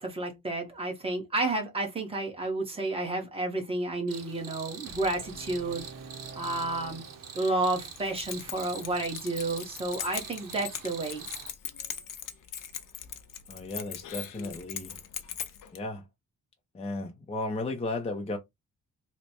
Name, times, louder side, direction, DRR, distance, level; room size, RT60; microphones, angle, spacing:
voice 1, 0.0-5.9 6.3-7.0 7.3-11.2, right 2 dB, 15° right, 1.0 m, -31 dB
Cricket, 4.1-11.5, right 7 dB, 70° right, 0.8 m, -45 dB
Brass instrument, 4.9-7.9, right 3 dB, 40° right, 0.8 m, -47 dB
Keys jangling, 7.9-15.8, left 9 dB, 70° left, 0.6 m, -40 dB
voice 2, 13.5-15.0 15.7-16.1 16.7-18.4, left 2 dB, 20° left, 0.5 m, -34 dB
3.2 x 2.1 x 4.1 m
wide cardioid pair, 160°, 33 cm